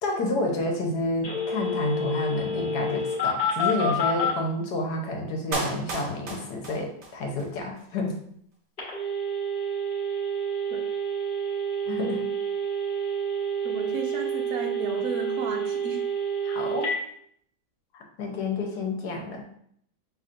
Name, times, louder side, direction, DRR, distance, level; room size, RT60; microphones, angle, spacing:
voice 1, 0.0-8.1 11.9-12.2 16.4-16.9 17.9-19.4, left 2 dB, 70° left, 2 dB, 1.4 m, -29 dB
Telephone, 1.2-4.3 8.8-17.0, right 2 dB, 35° left, 1.4 m, -28 dB
Clapping, 5.5-7.5 7.8-7.9, right 3 dB, 90° right, 0.4 m, -34 dB
voice 2, 13.6-16.0, right 3 dB, 65° right, 3 dB, 1.0 m, -34 dB
5.9 x 3.2 x 2.5 m, 0.67 s
omnidirectional pair, 1.8 m